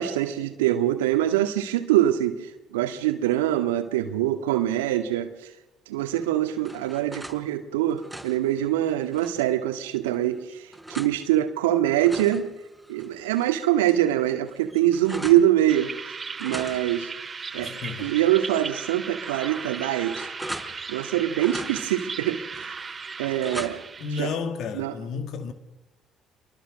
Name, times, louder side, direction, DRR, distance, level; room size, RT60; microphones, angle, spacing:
voice 1, 0.0-5.5 5.9-12.5 12.9-15.9 16.4-17.1 17.5-17.7 18.0-20.3 20.9-22.4 23.2-23.8 24.2-24.3 24.7-24.9, right 12 dB, 80° right, 1.9 m, -24 dB
sound 1, 6.1-7.4 7.8-9.5 10.0-11.2 11.7-13.5 13.8-13.9 14.2-15.5 16.4-18.2 18.5-18.7 19.3-21.1 21.4-22.1 22.5-24.0, right 1 dB, ahead, 5.0 m, -40 dB
sound 2, 15.7-24.2, right 5 dB, 35° right, 2.1 m, -37 dB
voice 2, 17.5-18.2 24.0-25.5, left 5 dB, 60° left, 2.2 m, -32 dB
28.0 x 23.5 x 6.5 m
hypercardioid pair, 50°, 0 cm